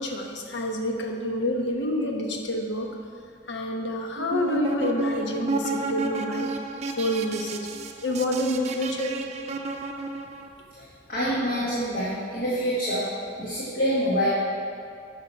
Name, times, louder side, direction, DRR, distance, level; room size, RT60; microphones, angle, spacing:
voice 1, 0.0-2.9 3.5-6.5 7.0-7.6 8.0-9.2 9.5-9.6 10.8-10.9, left 1 dB, 70° left, 2 dB, 1.1 m, -28 dB
sound 1, 4.2-10.5, right 3 dB, 35° right, 0.5 m, -32 dB
voice 2, 11.1-13.1 13.4-14.3, equal, 50° left, -8 dB, 1.6 m, -26 dB
8.9 x 5.8 x 5.7 m, 2.4 s
head